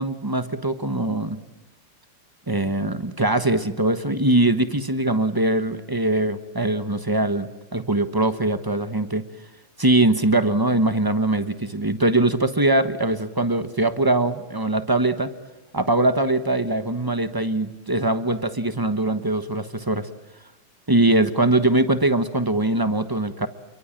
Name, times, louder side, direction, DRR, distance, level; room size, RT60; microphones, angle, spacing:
voice 1, 0.0-1.4 2.5-9.2 9.8-15.3 15.7-20.1 20.9-23.5, right 2 dB, 20° right, 10 dB, 0.5 m, -22 dB
28.5 x 23.0 x 8.8 m, 1.0 s
omnidirectional pair, 2.4 m